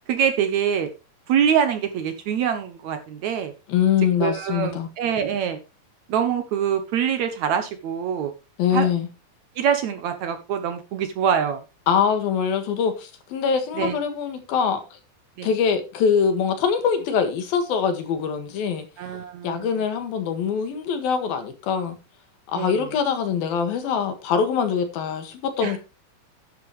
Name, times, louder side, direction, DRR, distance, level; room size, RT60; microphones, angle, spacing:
voice 1, 0.1-0.9 1.3-3.5 4.2-5.6 6.1-8.3 8.7-8.9 9.6-11.6 13.8-14.0 15.4-15.5 19.0-19.7 22.6-22.8 25.6-25.8, right 8 dB, 65° right, 1.9 m, -24 dB
voice 2, 3.7-4.9 8.6-9.1 11.9-15.0 15.4-18.9 19.4-22.0 22.5-25.8, left 7 dB, 90° left, 3.6 m, -23 dB
11.0 x 10.0 x 3.1 m
omnidirectional pair, 4.1 m